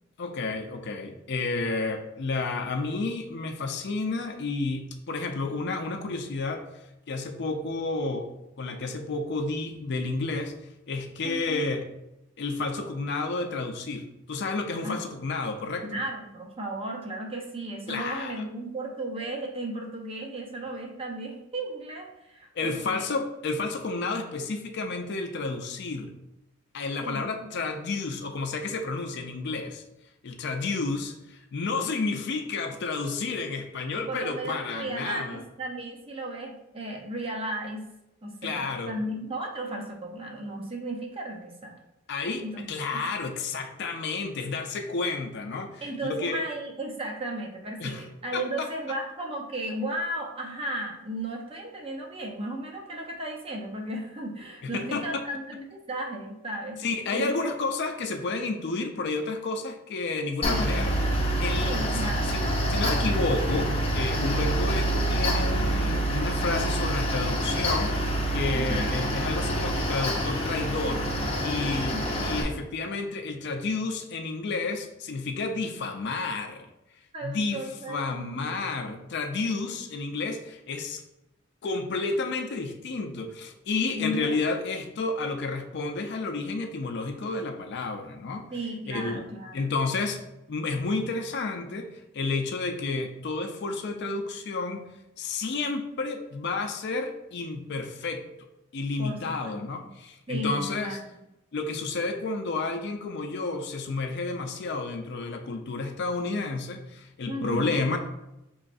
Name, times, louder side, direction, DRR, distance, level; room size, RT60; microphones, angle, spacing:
voice 1, 0.2-6.6 7.1-10.5 10.9-11.9 12.4-15.9 17.9-18.4 22.6-26.1 26.7-29.8 30.2-35.4 38.4-38.9 42.1-46.4 47.8-48.1 48.3-48.7 54.6-55.2 56.8-60.9 61.4-71.1 71.4-76.7 77.2-81.0 81.6-88.5 88.9-89.2 89.5-90.2 90.5-94.9 95.2-98.5 98.7-101.0 101.5-108.0, left 3 dB, 55° left, 5 dB, 0.4 m, -31 dB
voice 2, 11.2-11.7 14.8-14.9 15.8-23.1 27.0-27.3 33.9-37.8 38.2-41.8 42.4-42.6 45.8-56.8 57.1-57.5 60.5-61.0 61.6-62.3 68.5-69.0 71.9-72.3 77.1-78.4 83.9-84.4 88.5-89.6 99.0-99.9 100.3-101.2 107.3-107.8, right 1 dB, 30° right, 0 dB, 0.7 m, -35 dB
Mechanical fan, 60.4-72.4, right 1 dB, 30° left, 0.8 m, -26 dB
5.5 x 3.1 x 2.5 m, 0.90 s
head